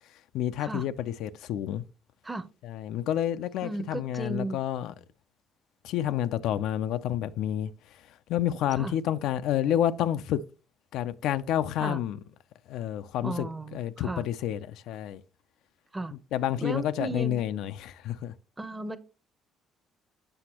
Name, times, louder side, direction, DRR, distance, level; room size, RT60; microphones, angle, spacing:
voice 1, 0.3-1.8 2.6-4.9 5.8-7.7 8.3-10.4 10.9-12.2 12.7-15.2 16.3-18.3, left 11 dB, 85° left, 0.4 m, -29 dB
voice 2, 3.6-4.6 8.8-8.9 11.8-12.0 13.2-14.2 15.9-16.1 16.6-17.4 18.6-19.0, right 2 dB, 15° right, 0.6 m, -35 dB
7.7 x 5.9 x 2.9 m
cardioid pair, 115°, 0 cm